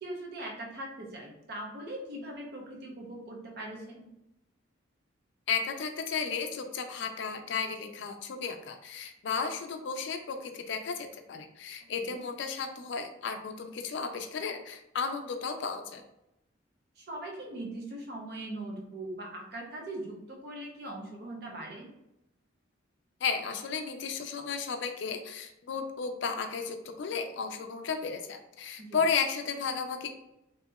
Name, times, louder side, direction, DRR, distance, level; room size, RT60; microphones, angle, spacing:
voice 1, 0.0-4.1 12.0-12.2 17.0-21.9 28.8-29.0, right 1 dB, 50° right, 0 dB, 0.7 m, -40 dB
voice 2, 5.5-16.0 23.2-30.1, left 5 dB, 60° left, 6 dB, 0.4 m, -34 dB
2.8 x 2.7 x 2.3 m, 0.87 s
head